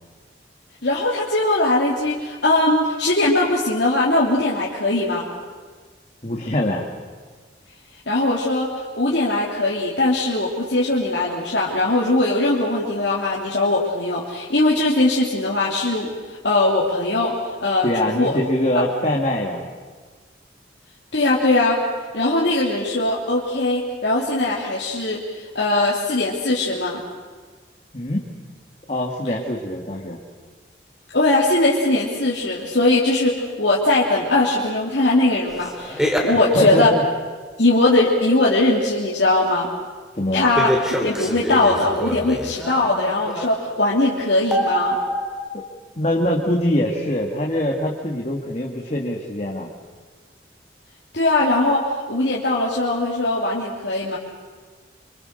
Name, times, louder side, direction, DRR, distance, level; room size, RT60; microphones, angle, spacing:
voice 1, 0.8-5.3 8.1-16.1 16.4-17.3 17.6-18.4 21.1-21.8 22.1-27.0 31.1-36.9 37.6-39.7 40.3-40.7 41.0-45.0 51.1-54.2, left 2 dB, 70° left, -5 dB, 3.0 m, -20 dB
voice 2, 6.2-6.9 17.8-19.7 27.9-28.3 28.9-30.2 36.3-37.0 40.2-40.5 46.0-49.7, left 1 dB, 35° left, -1 dB, 2.1 m, -23 dB
sound 1, 35.5-36.9 40.5-43.7 44.5-45.5, equal, 5° right, 2.7 m, -26 dB
26.0 x 26.0 x 6.7 m, 1.5 s
head